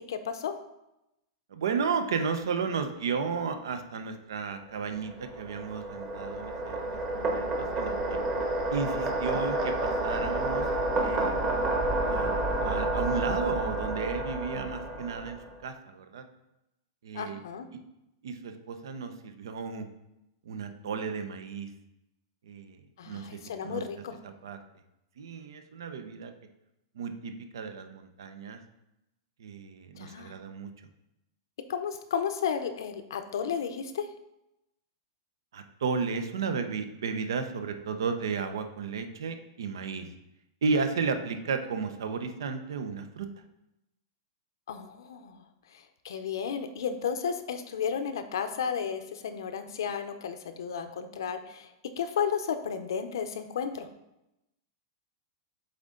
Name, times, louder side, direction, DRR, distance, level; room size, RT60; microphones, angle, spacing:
voice 1, 0.1-0.6 17.1-17.7 23.0-24.2 30.0-30.3 31.7-34.1 44.7-45.4 46.0-51.7 52.0-53.9, left 7 dB, 80° left, 9 dB, 0.7 m, -33 dB
voice 2, 1.5-8.2 8.7-10.7 10.9-11.4 12.1-16.2 17.0-17.4 18.2-19.9 20.5-21.7 22.4-23.8 24.2-24.6 25.2-26.3 26.9-28.6 29.4-30.7 35.5-40.1 40.6-43.3, right 5 dB, 85° right, 8 dB, 0.8 m, -33 dB
sound 1, 4.8-15.5, right 2 dB, 25° right, 1.0 m, -30 dB
7.8 x 3.8 x 3.8 m, 0.89 s
supercardioid pair, 170°, 2 cm